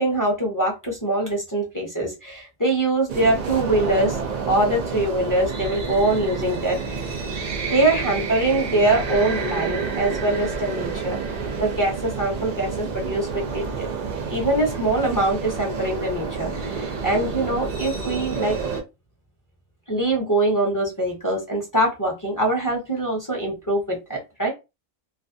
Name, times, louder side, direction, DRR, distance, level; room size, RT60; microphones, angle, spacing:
voice 1, 0.0-4.2 4.5-7.3 7.6-11.2 11.6-13.9 14.3-18.6 19.9-24.5, right 1 dB, 20° left, -1 dB, 0.5 m, -23 dB
sound 1, 3.1-18.8, right 5 dB, 70° right, 0.4 m, -29 dB
2.5 x 2.2 x 2.5 m, 0.25 s
omnidirectional pair, 1.4 m